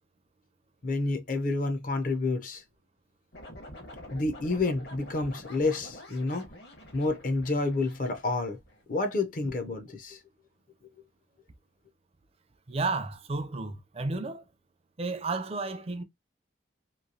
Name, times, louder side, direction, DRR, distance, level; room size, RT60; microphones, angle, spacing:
voice 1, 0.8-2.6 4.1-6.5 6.9-8.6 8.9-10.2, left 2 dB, 45° left, 0.5 m, -29 dB
sound 1, 3.3-8.8, left 1 dB, 60° left, 1.1 m, -47 dB
voice 2, 12.7-14.4 15.0-16.0, right 3 dB, 30° right, 0.4 m, -32 dB
3.0 x 2.6 x 2.6 m
head